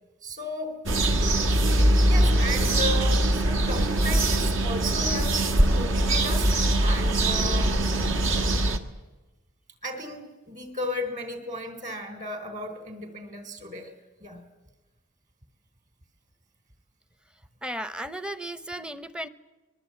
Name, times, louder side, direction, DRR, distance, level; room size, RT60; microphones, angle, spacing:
voice 1, 0.2-0.8 2.1-7.8 9.8-13.9 14.2-14.4, left 1 dB, 40° right, 8 dB, 3.5 m, -35 dB
sound 1, 0.9-8.8, right 1 dB, 65° right, 1.6 m, -22 dB
voice 2, 17.6-19.3, right 1 dB, 5° right, 14 dB, 0.7 m, -35 dB
24.0 x 21.5 x 8.7 m, 1.2 s
head